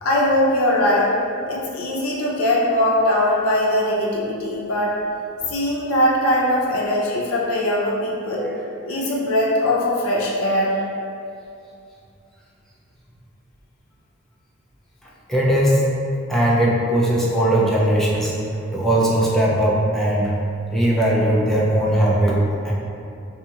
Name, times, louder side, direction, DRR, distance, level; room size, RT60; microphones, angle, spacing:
voice 1, 0.0-1.1 1.5-5.0 5.5-8.5 8.8-10.8, left 1 dB, 90° left, -4 dB, 0.5 m, -20 dB
voice 2, 15.3-15.8 16.3-18.3 18.7-20.3 20.7-22.7, right 1 dB, ahead, -7 dB, 0.4 m, -19 dB
2.7 x 2.7 x 2.3 m, 2.5 s
head